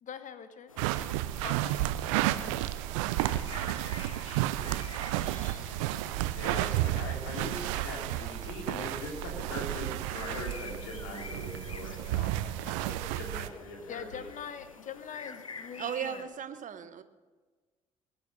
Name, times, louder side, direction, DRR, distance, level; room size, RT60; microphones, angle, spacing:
voice 1, 0.0-0.7 1.4-1.8 13.9-16.3, left 8 dB, 50° left, 11 dB, 1.1 m, -43 dB
sound 1, 0.7-16.2, left 5 dB, 90° left, 0.5 m, -49 dB
sound 2, 0.8-13.5, right 15 dB, 70° right, 0.6 m, -32 dB
voice 2, 6.3-14.3, left 2 dB, 70° left, 1 dB, 3.1 m, -41 dB
voice 3, 15.8-17.0, right 9 dB, 50° right, 11 dB, 1.2 m, -36 dB
21.5 x 8.5 x 6.3 m, 1.4 s
figure-of-eight pair, 45°, 17 cm